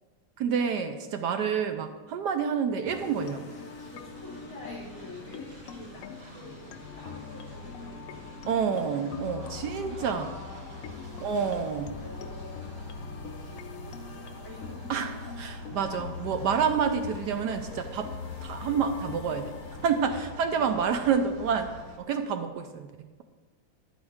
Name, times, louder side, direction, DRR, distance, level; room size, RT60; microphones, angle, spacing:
voice 1, 0.4-3.5 8.5-10.3 11.2-12.0 14.9-18.1 18.4-19.5 19.8-23.2, right 6 dB, 70° right, 7 dB, 1.1 m, -28 dB
sound 1, 2.9-20.2, left 6 dB, 80° left, 0.7 m, -43 dB
Train, 2.9-22.0, right 1 dB, 35° right, 1.3 m, -50 dB
voice 2, 3.9-8.4 8.6-11.5 11.8-15.1 16.5-16.6 20.5-20.9, left 1 dB, 40° left, -7 dB, 3.8 m, -48 dB
sound 2, 9.4-21.9, left 3 dB, 60° left, 2.2 m, -47 dB
11.5 x 8.8 x 3.5 m, 1.3 s
omnidirectional pair, 2.1 m